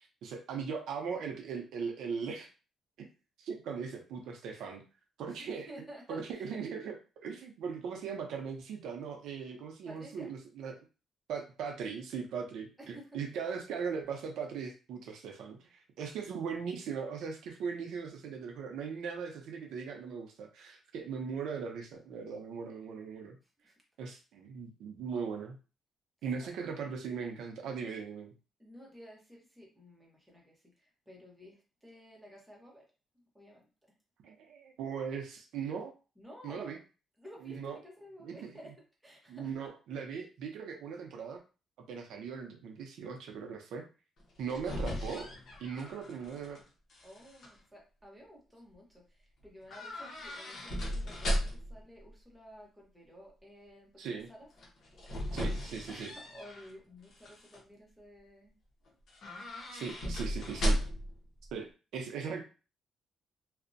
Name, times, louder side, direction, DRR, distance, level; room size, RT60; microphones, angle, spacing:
voice 1, 0.2-2.5 3.0-3.1 3.4-4.8 5.2-5.7 6.1-6.9 7.2-10.8 11.3-23.4 24.0-25.6 26.2-28.3 34.2-35.9 36.4-36.8 37.4-37.8 38.2-38.5 39.3-41.4 41.8-43.9 44.4-45.3 45.6-46.6 54.0-54.3 55.3-56.1 59.7-60.8 61.5-62.4, right 6 dB, 85° right, 3 dB, 0.5 m, -39 dB
voice 2, 5.3-6.6 9.9-10.3 12.8-13.1 23.6-23.7 24.0-24.1 26.4-26.5 28.6-32.8 33.3-33.7 36.2-36.7 37.2-38.8 39.0-39.5 47.0-54.5 55.9-58.5 60.0-60.4, equal, 5° right, -2 dB, 0.8 m, -53 dB
sound 1, 44.2-46.6 46.9-47.5 49.7-51.8 54.6-56.7 57.1-57.6 59.1-61.2 61.4-61.5, equal, 50° left, 0.7 m, -36 dB
2.5 x 2.0 x 2.5 m, 0.33 s
cardioid pair, 160°, 0 cm